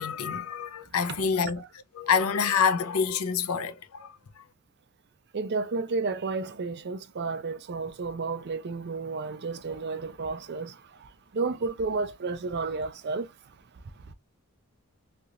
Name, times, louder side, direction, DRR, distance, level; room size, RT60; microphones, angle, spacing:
voice 1, 0.0-1.6 1.9-4.4, left 6 dB, 80° left, 0.5 m, -27 dB
voice 2, 5.3-13.3 14.1-14.2, right 4 dB, 50° right, 0.5 m, -32 dB
3.3 x 2.8 x 2.4 m
head